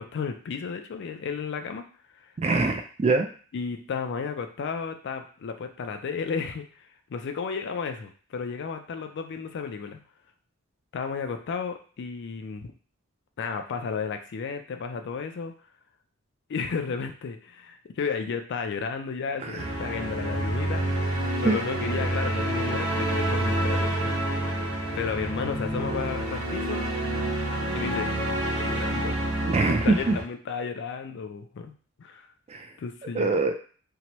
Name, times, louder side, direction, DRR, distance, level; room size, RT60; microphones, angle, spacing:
voice 1, 0.0-1.8 2.2-2.3 3.5-10.0 10.9-12.7 13.4-15.5 16.5-21.1 21.4-24.2 24.9-26.9 27.7-28.1 28.6-29.2 29.6-31.7 32.0-32.3 32.8-33.4, left 5 dB, 55° left, 7 dB, 0.4 m, -33 dB
voice 2, 2.4-3.3 19.4-19.6 21.4-21.6 29.5-30.1 32.5-32.7 33.1-33.5, right 3 dB, 30° right, 6 dB, 0.3 m, -24 dB
sound 1, 19.6-30.2, right 1 dB, 70° right, 1.0 m, -28 dB
2.8 x 2.2 x 2.9 m, 0.42 s
head